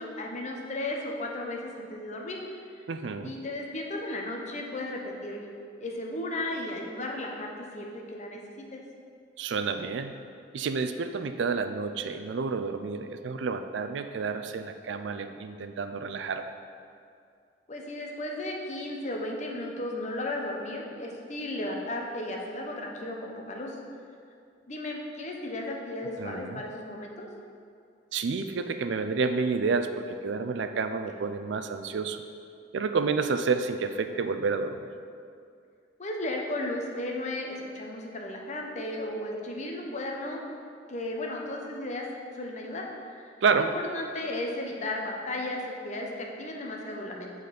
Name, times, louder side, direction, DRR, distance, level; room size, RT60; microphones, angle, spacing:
voice 1, 0.0-2.4 2.7-2.8 3.2-5.5 5.8-8.8 17.7-23.8 24.7-27.3 36.0-40.4 40.9-42.1 42.3-47.3, left 1 dB, 40° left, 0 dB, 0.8 m, -35 dB
voice 2, 2.9-3.3 9.4-10.1 10.5-16.5 26.2-26.6 28.1-32.2 32.7-34.9 43.4-43.7, right 4 dB, 75° right, 8 dB, 0.4 m, -29 dB
7.7 x 4.0 x 5.1 m, 2.4 s
head